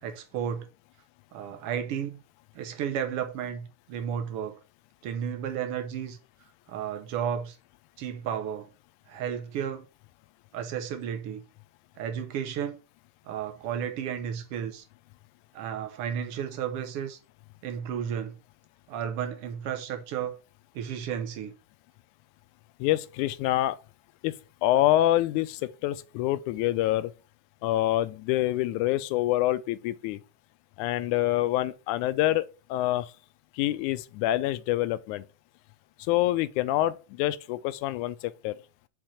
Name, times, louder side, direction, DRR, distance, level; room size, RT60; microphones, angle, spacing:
voice 1, 0.0-0.7 1.3-2.2 2.5-4.6 5.0-6.2 6.7-7.6 8.0-8.7 9.1-9.8 10.5-11.4 12.0-12.8 13.2-14.8 15.5-17.2 17.6-18.4 18.9-20.4 20.7-21.5, right 8 dB, 85° right, 1.3 m, -33 dB
voice 2, 22.8-23.8 24.2-24.3 24.6-27.1 27.6-30.2 30.8-32.5 32.7-33.1 33.5-35.3 36.1-38.6, left 14 dB, 80° left, 1.9 m, -26 dB
5.9 x 4.3 x 6.4 m
omnidirectional pair, 3.7 m